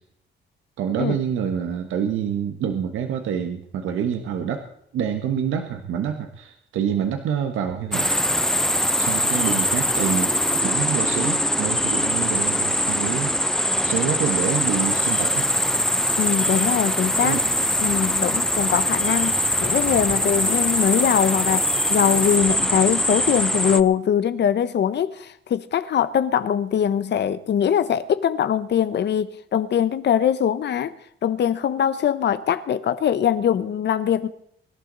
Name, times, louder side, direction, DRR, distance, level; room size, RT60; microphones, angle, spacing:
voice 1, 0.8-4.7 4.9-8.1 9.0-15.5 17.2-17.4, right 8 dB, 85° right, 1.4 m, -27 dB
sound 1, 7.9-23.8, left 1 dB, ahead, 0.7 m, -22 dB
voice 2, 16.2-17.4 17.8-30.9 31.2-34.3, left 9 dB, 60° left, 1.1 m, -22 dB
23.5 x 12.0 x 4.1 m
cardioid pair, 90°, 20 cm